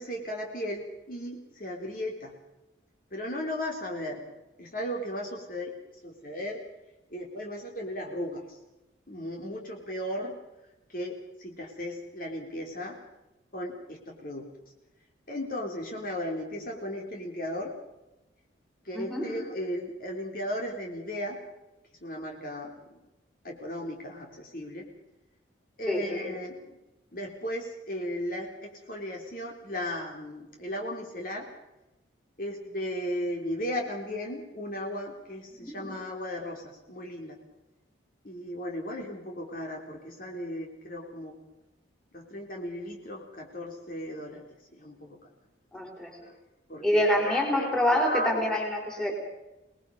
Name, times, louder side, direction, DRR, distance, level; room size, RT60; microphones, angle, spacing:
voice 1, 0.0-2.3 3.1-4.3 4.6-5.8 6.0-6.7 7.1-8.6 9.1-10.4 10.9-13.0 13.5-14.5 15.3-17.7 18.9-21.4 22.0-23.0 23.4-24.9 25.8-26.8 27.1-31.5 32.4-37.4 38.2-41.4 42.1-45.2 46.2-46.4 46.7-48.9, equal, 45° left, 1 dB, 3.7 m, -36 dB
voice 2, 18.9-19.3 25.9-26.0 35.6-35.7 45.7-46.1 46.8-49.1, left 1 dB, 5° left, 1 dB, 4.4 m, -26 dB
26.0 x 20.0 x 5.5 m, 0.97 s
head